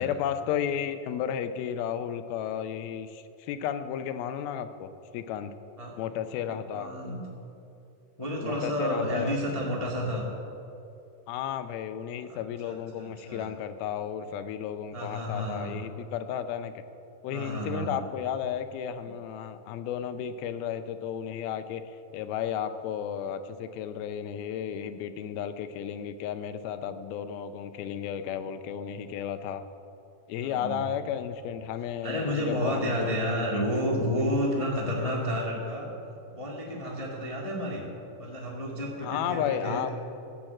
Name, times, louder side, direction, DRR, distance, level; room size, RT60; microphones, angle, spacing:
voice 1, 0.0-5.5 6.0-6.9 8.4-9.4 11.3-16.8 17.2-29.6 30.3-33.6 39.0-39.9, left 9 dB, 90° left, 10 dB, 2.6 m, -33 dB
voice 2, 6.5-7.2 8.2-10.2 12.3-13.5 14.9-15.7 17.3-17.9 30.4-30.8 32.0-35.9 36.3-37.8 38.2-39.9, equal, 25° left, -2 dB, 0.6 m, -31 dB
13.5 x 8.7 x 7.6 m, 2.8 s
omnidirectional pair, 4.2 m